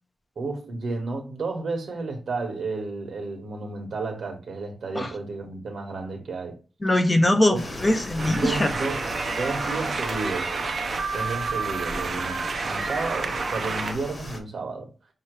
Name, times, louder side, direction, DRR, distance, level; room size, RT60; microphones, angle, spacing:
voice 1, 0.4-6.6 7.5-7.6 8.4-10.6 11.1-14.9, right 3 dB, 70° right, 1.3 m, -32 dB
voice 2, 6.8-8.7, left 1 dB, 15° left, 0.5 m, -21 dB
sound 1, 7.5-14.4, left 1 dB, 30° left, 1.2 m, -38 dB
sound 2, 8.2-13.9, right 4 dB, 50° right, 0.6 m, -29 dB
5.6 x 2.9 x 3.0 m
wide cardioid pair, 170°, 0 cm